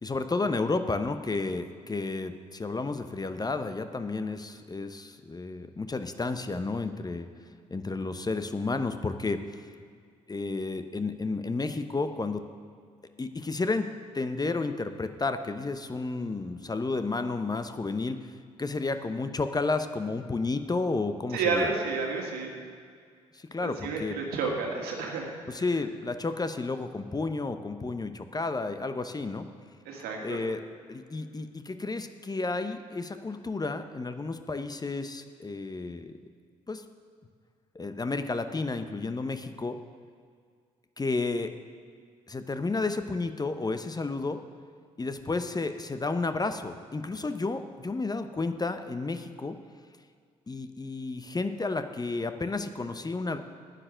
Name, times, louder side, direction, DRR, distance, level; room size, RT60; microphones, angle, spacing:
voice 1, 0.0-7.3 7.7-9.6 10.3-12.5 13.2-18.3 18.6-21.7 23.3-24.2 25.5-29.5 30.2-30.6 30.9-36.2 36.7-36.8 37.7-39.8 41.0-41.5 42.3-44.4 45.0-49.6 50.5-53.4, left 3 dB, 25° left, 9 dB, 0.8 m, -31 dB
voice 2, 21.3-22.5 23.6-25.3 29.9-30.4, right 4 dB, 70° right, 1 dB, 1.8 m, -30 dB
9.8 x 9.2 x 6.4 m, 2.1 s
hypercardioid pair, 45°, 17 cm